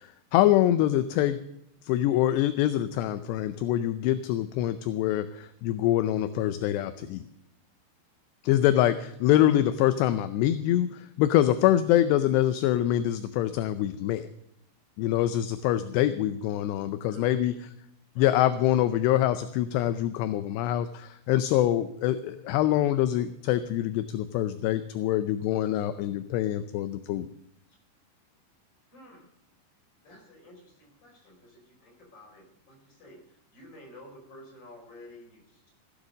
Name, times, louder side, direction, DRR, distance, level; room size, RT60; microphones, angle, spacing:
voice 1, 0.0-1.4 1.8-7.3 8.4-14.3 15.0-17.5 18.2-27.3, left 13 dB, 80° left, 12 dB, 2.6 m, -25 dB
voice 2, 17.1-17.6 18.1-18.4 28.9-29.3 30.0-35.7, left 1 dB, 25° left, 0 dB, 4.8 m, -51 dB
16.0 x 10.0 x 6.4 m, 0.77 s
omnidirectional pair, 5.3 m